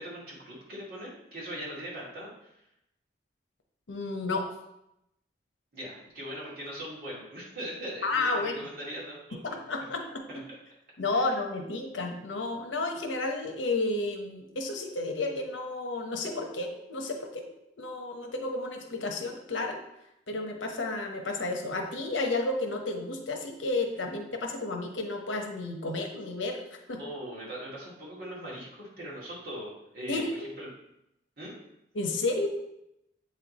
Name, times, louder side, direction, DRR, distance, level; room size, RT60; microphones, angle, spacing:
voice 1, 0.0-2.3 5.7-9.6 10.3-10.4 11.1-11.4 27.0-30.7 31.4-31.5, equal, 50° right, -6 dB, 2.3 m, -40 dB
voice 2, 3.9-4.5 8.0-8.5 9.4-10.1 10.3-10.4 11.0-17.5 17.8-19.8 20.3-26.6 26.9-27.0 30.1-30.5 31.9-32.5, left 2 dB, 85° left, 3 dB, 0.9 m, -31 dB
8.0 x 3.3 x 4.1 m, 0.83 s
head